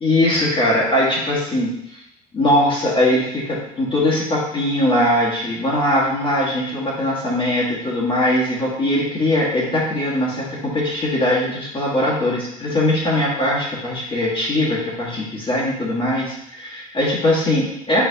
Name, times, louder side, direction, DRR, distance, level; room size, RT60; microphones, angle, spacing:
voice 1, 0.0-2.0 2.3-18.0, left 1 dB, 30° left, -6 dB, 1.4 m, -20 dB
4.5 x 3.8 x 2.7 m, 0.80 s
hypercardioid pair, 75°, 18 cm